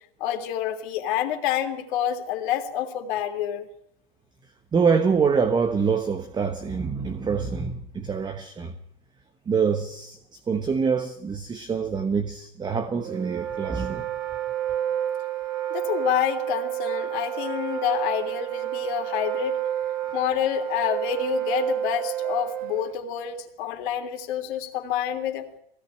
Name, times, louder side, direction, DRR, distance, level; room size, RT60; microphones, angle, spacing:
voice 1, 0.2-3.7 15.7-19.6 20.1-25.5, left 10 dB, 55° left, 3.1 m, -28 dB
voice 2, 4.7-8.7 9.5-14.1, right 5 dB, 15° right, 1.2 m, -25 dB
Wind instrument woodwind instrument, 13.0-23.0, right 11 dB, 50° right, 2.1 m, -30 dB
21.0 x 17.5 x 8.9 m
hypercardioid pair, 120°, 31 cm